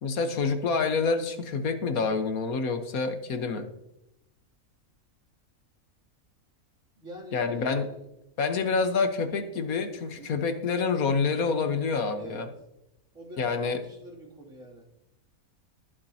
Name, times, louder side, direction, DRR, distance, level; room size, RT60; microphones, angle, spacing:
voice 1, 0.0-3.7 7.3-7.9 8.4-12.5 13.4-13.8, left 4 dB, 90° left, 7 dB, 1.6 m, -27 dB
voice 2, 7.0-8.1 9.8-10.4 12.1-12.5 13.1-14.9, right 1 dB, 60° right, -4 dB, 3.4 m, -45 dB
22.0 x 7.5 x 2.9 m, 0.85 s
omnidirectional pair, 1.5 m